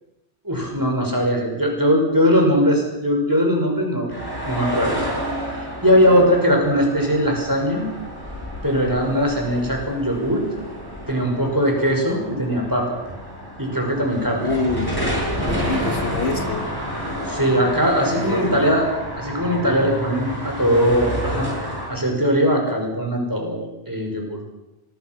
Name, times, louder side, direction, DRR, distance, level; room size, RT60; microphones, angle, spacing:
voice 1, 0.4-4.1 4.5-5.0 5.4-7.9 8.6-10.4 11.1-13.0 13.6-14.5 17.2-18.8 19.2-24.4, equal, 15° right, 1 dB, 6.0 m, -20 dB
sound 1, 4.1-21.9, equal, 20° left, 7.9 m, -30 dB
voice 2, 8.8-9.2 14.4-15.0 15.4-16.8 18.1-18.7, left 3 dB, 65° left, 7 dB, 1.7 m, -27 dB
26.0 x 20.5 x 6.2 m, 0.97 s
omnidirectional pair, 1.2 m